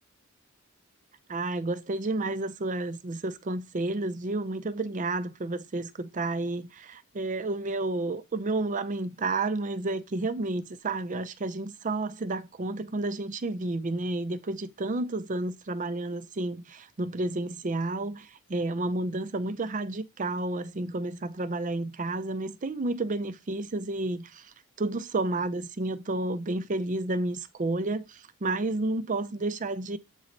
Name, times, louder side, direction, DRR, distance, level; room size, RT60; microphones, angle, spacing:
voice 1, 1.3-30.0, right 2 dB, 40° right, 0.5 m, -31 dB
8.2 x 3.8 x 3.2 m
head